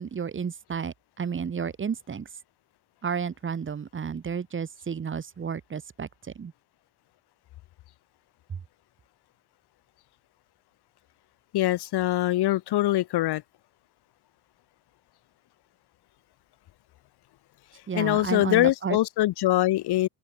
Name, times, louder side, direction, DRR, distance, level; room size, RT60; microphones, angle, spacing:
voice 1, 0.0-2.3 3.0-6.5 8.5-8.6 17.9-19.0, right 6 dB, 25° right, 3.1 m, -32 dB
voice 2, 11.5-13.4 17.9-20.1, left 15 dB, 60° left, 1.5 m, -23 dB
cardioid pair, 160°, 43 cm